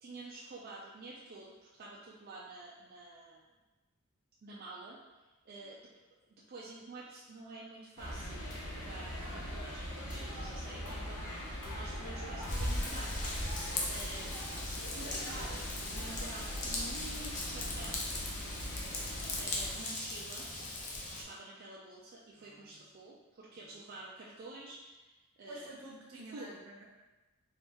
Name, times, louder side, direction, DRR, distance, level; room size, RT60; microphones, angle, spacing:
voice 1, 0.0-3.4 4.4-5.9 6.5-8.5 8.7-13.6 13.9-14.4 14.9-18.0 19.4-20.5 21.0-25.7 26.3-26.5, right 2 dB, 45° right, -4 dB, 0.4 m, -49 dB
sound 1, 8.0-19.8, equal, 85° left, 0.8 m, -42 dB
Raindrop / Vehicle horn car horn honking / Trickle dribble, 12.5-21.2, left 1 dB, 35° left, 0.6 m, -38 dB
voice 2, 22.4-22.8 23.6-23.9 25.5-26.8, right 1 dB, 70° right, -2 dB, 0.8 m, -50 dB
3.1 x 2.8 x 3.5 m, 1.1 s
head